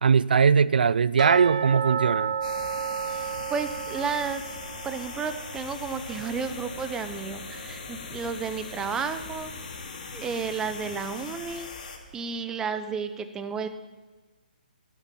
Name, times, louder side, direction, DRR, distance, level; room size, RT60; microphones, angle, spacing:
voice 1, 0.0-2.3, right 6 dB, 75° right, 19 dB, 0.3 m, -20 dB
sound 1, 1.2-8.0 8.3-8.4 8.9-9.0 9.6-9.7, right 7 dB, 50° right, 1.3 m, -33 dB
sound 2, 2.4-12.0, left 4 dB, 55° left, 2.4 m, -40 dB
voice 2, 3.1-4.4 4.8-9.5 10.1-11.7 12.1-13.7, right 5 dB, 10° right, 10 dB, 0.7 m, -32 dB
12.0 x 9.2 x 7.5 m, 1.2 s
hypercardioid pair, 145°, 5 cm